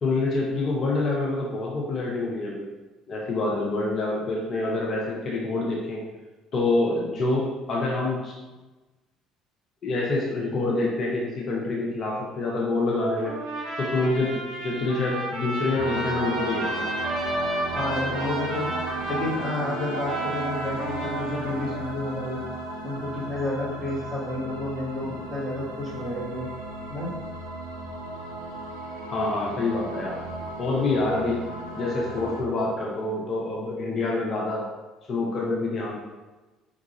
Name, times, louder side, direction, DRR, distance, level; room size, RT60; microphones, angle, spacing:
voice 1, 0.0-2.7 3.1-6.0 6.5-8.3 9.8-13.3 13.8-16.8 29.1-30.2 30.6-31.4 31.7-34.6 35.1-36.0, left 2 dB, 40° left, -3 dB, 0.6 m, -26 dB
Trumpet, 13.2-21.8, equal, 50° right, 1.4 m, -32 dB
sound 1, 15.8-32.4, right 2 dB, 75° right, 0.5 m, -35 dB
voice 2, 17.7-22.4 22.8-26.5 26.9-27.1, left 1 dB, 15° right, -6 dB, 1.5 m, -30 dB
4.6 x 2.4 x 3.0 m, 1.2 s
figure-of-eight pair, 55°, 0 cm